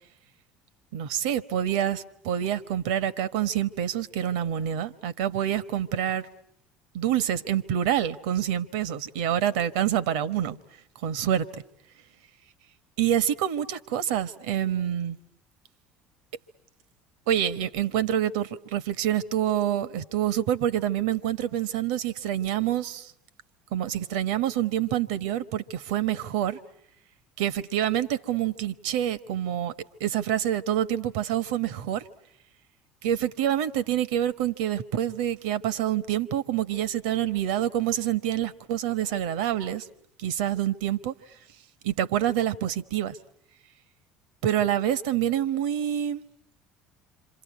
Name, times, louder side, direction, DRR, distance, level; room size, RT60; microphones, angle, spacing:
voice 1, 0.9-6.3 6.9-10.6 11.0-11.6 13.0-15.2 17.3-23.1 23.7-26.6 27.4-29.7 30.0-32.1 33.0-39.9 40.2-41.1 41.8-43.2 44.4-46.2, right 11 dB, 70° right, 1.1 m, -27 dB
27.5 x 26.0 x 8.4 m
figure-of-eight pair, 65°, 4 cm